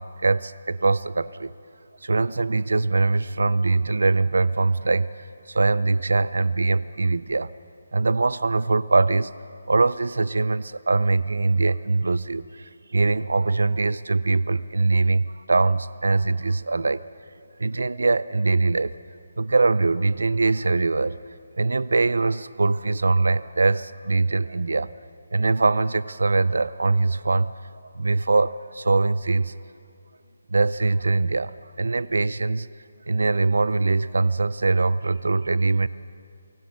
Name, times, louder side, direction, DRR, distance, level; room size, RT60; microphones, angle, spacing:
voice 1, 0.0-1.5 2.0-5.1 5.5-7.5 7.9-9.3 9.7-17.0 17.6-18.9 19.4-21.2 21.6-24.9 25.3-27.5 27.9-29.5 30.5-32.7 33.1-35.9, right 3 dB, 85° right, 17 dB, 0.7 m, -22 dB
24.5 x 17.0 x 7.6 m, 2.4 s
hypercardioid pair, 170°, 0 cm